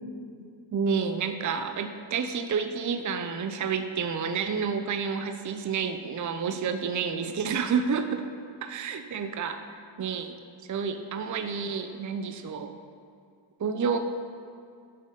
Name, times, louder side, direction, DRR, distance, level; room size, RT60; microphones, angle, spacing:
voice 1, 0.7-8.2 8.6-10.3 10.7-12.7 13.6-14.0, right 6 dB, 40° right, 8 dB, 0.5 m, -29 dB
8.4 x 4.1 x 5.3 m, 2.4 s
cardioid pair, 60°, 49 cm